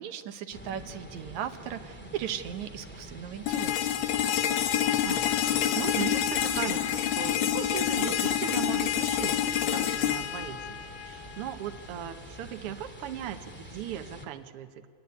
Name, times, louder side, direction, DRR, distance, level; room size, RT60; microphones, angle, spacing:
voice 1, 0.0-4.0, right 10 dB, 75° right, 8 dB, 2.3 m, -37 dB
sound 1, 0.5-14.2, equal, 5° left, 1.8 m, -46 dB
sound 2, 3.5-11.4, left 11 dB, 70° left, 2.2 m, -27 dB
voice 2, 4.8-14.9, right 10 dB, 60° right, 7 dB, 1.7 m, -38 dB
28.0 x 19.5 x 9.7 m, 2.1 s
omnidirectional pair, 3.3 m